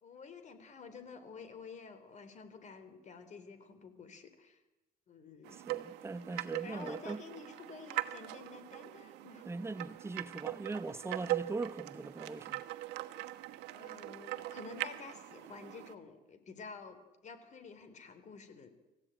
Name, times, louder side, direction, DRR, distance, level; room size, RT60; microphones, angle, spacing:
voice 1, 0.0-4.6 5.1-5.6 6.2-6.3 6.6-9.5 13.7-18.7, left 5 dB, 45° left, 3.7 m, -50 dB
sound 1, 5.4-15.9, right 16 dB, 90° right, 1.2 m, -41 dB
voice 2, 5.6-7.2 9.4-12.6, right 3 dB, 15° right, 0.9 m, -40 dB
27.0 x 15.0 x 9.0 m
cardioid pair, 110°, 17 cm